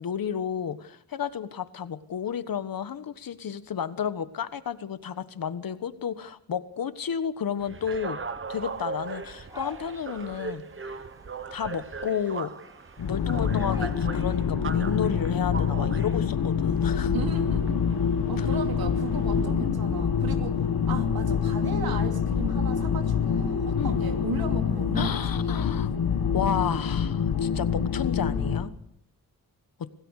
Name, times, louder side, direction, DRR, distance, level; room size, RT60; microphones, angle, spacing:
voice 1, 0.0-8.2 8.5-11.1 11.5-12.5 13.0-17.1 18.4-18.5 23.8-24.0 25.0-25.9 26.3-28.7 29.8-29.9, left 8 dB, 65° left, 12 dB, 1.4 m, -32 dB
sound 1, 7.6-19.5, right 4 dB, 35° right, 1.1 m, -39 dB
sound 2, 8.5-14.0, equal, 10° right, 4.7 m, -47 dB
sound 3, 13.0-28.7, left 7 dB, 85° left, 1.8 m, -26 dB
voice 2, 17.1-17.8 18.3-20.6 20.9-25.7, right 5 dB, 75° right, 5 dB, 2.9 m, -36 dB
26.5 x 17.0 x 6.5 m, 0.73 s
wide cardioid pair, 120°, 37 cm